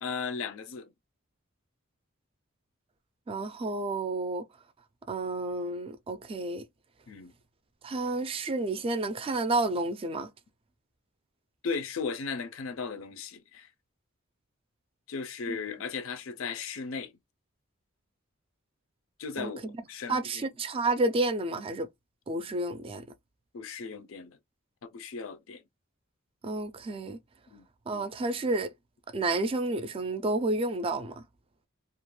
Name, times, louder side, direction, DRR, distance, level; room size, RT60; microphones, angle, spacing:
voice 1, 0.0-0.9 7.1-7.3 11.6-13.7 15.1-17.1 19.2-20.5 23.5-24.4 24.8-25.6 27.5-27.6, left 5 dB, 75° left, 0.5 m, -36 dB
voice 2, 3.3-4.5 5.1-6.6 7.8-10.3 15.5-15.6 19.4-19.8 20.1-21.9 22.3-23.0 26.4-27.2 27.9-28.7 29.1-31.2, right 2 dB, 25° right, 0.3 m, -30 dB
2.4 x 2.2 x 3.0 m
head